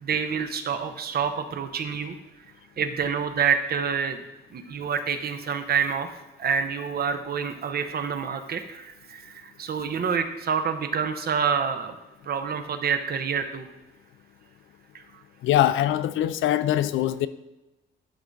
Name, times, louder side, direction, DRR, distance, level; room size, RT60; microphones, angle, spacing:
voice 1, 0.0-2.2 2.8-4.2 4.5-6.1 6.4-11.9 12.3-13.7, right 6 dB, 50° right, 8 dB, 0.8 m, -27 dB
voice 2, 15.4-17.3, left 12 dB, 80° left, 14 dB, 0.4 m, -22 dB
11.5 x 3.8 x 3.6 m, 1.0 s
cardioid pair, 90°, 20 cm